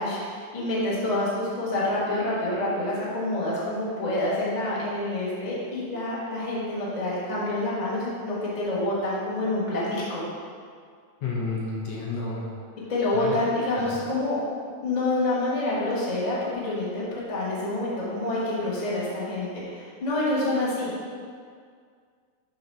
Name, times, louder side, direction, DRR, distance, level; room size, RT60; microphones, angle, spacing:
voice 1, 0.0-10.2 12.9-14.4 14.8-21.1, left 2 dB, 45° left, -8 dB, 0.5 m, -27 dB
voice 2, 11.2-12.5 13.1-13.4 13.7-14.0, left 3 dB, 65° left, -4 dB, 1.8 m, -31 dB
7.8 x 2.8 x 5.5 m, 2.1 s
omnidirectional pair, 3.5 m